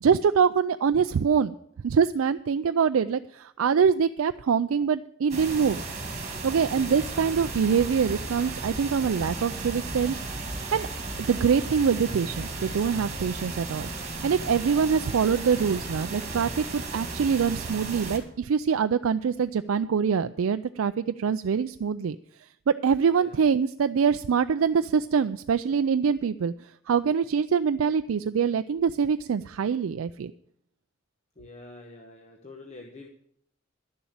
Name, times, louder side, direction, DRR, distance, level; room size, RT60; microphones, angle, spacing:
voice 1, 0.0-1.5 1.8-5.9 6.4-10.2 10.7-10.9 11.2-22.2 22.7-30.3, right 6 dB, 75° right, 10 dB, 0.4 m, -24 dB
sound 1, 5.3-18.2, right 3 dB, 30° right, 2.1 m, -35 dB
voice 2, 6.7-7.2 23.1-23.4 31.4-33.1, left 2 dB, 30° left, 2 dB, 1.1 m, -46 dB
11.5 x 7.1 x 8.8 m, 0.70 s
head